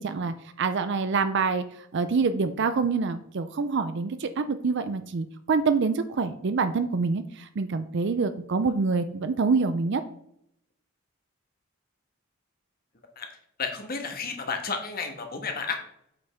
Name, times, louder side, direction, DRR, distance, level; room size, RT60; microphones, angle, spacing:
voice 1, 0.0-10.0, right 4 dB, 55° right, 11 dB, 0.5 m, -26 dB
voice 2, 13.6-15.8, left 5 dB, 45° left, 4 dB, 1.3 m, -32 dB
8.1 x 5.4 x 3.5 m, 0.73 s
head